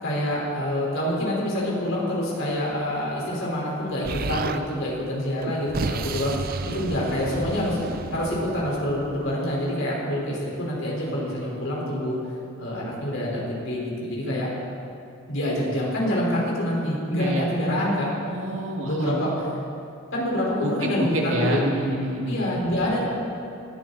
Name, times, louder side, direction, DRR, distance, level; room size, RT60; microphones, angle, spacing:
voice 1, 0.0-6.3 6.7-12.2 12.6-14.5 15.3-18.1 18.8-19.5 20.1-21.6 22.3-23.1, left 1 dB, 60° left, -4 dB, 4.6 m, -26 dB
Explosion, 4.0-4.6 5.4-9.3, right 3 dB, 45° right, 0.5 m, -31 dB
voice 2, 17.1-17.5 18.3-19.2 20.6-20.7 21.0-22.4, right 1 dB, 70° right, -1 dB, 2.2 m, -27 dB
19.0 x 14.0 x 4.2 m, 2.6 s
head